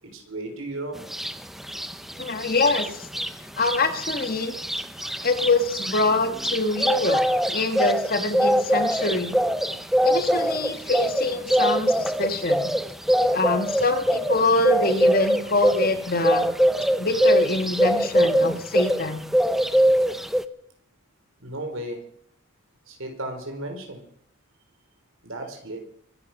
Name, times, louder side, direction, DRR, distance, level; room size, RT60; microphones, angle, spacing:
voice 1, 0.0-1.0 21.4-22.0 22.9-24.0 25.2-25.8, right 1 dB, 70° right, 4 dB, 4.3 m, -34 dB
sound 1, 1.1-1.3 1.7-3.3 3.6-3.8 4.0-19.1 19.3-20.4, equal, ahead, 0.5 m, -22 dB
voice 2, 2.2-3.1 3.6-4.5 5.2-7.2 7.5-9.4 10.0-12.7 13.3-16.5 17.0-19.3, left 3 dB, 40° left, 8 dB, 1.5 m, -24 dB
23.5 x 9.7 x 6.0 m, 0.66 s
head